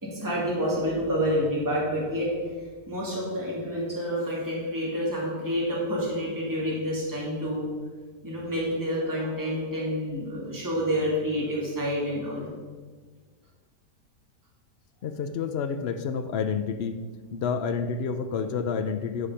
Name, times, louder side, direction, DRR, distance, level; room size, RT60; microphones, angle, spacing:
voice 1, 0.0-2.3 2.9-7.7 8.2-12.5, equal, 10° right, -5 dB, 2.4 m, -28 dB
voice 2, 15.0-17.0 17.3-19.3, left 6 dB, 75° left, 8 dB, 0.5 m, -29 dB
11.0 x 5.0 x 5.6 m, 1.5 s
omnidirectional pair, 1.8 m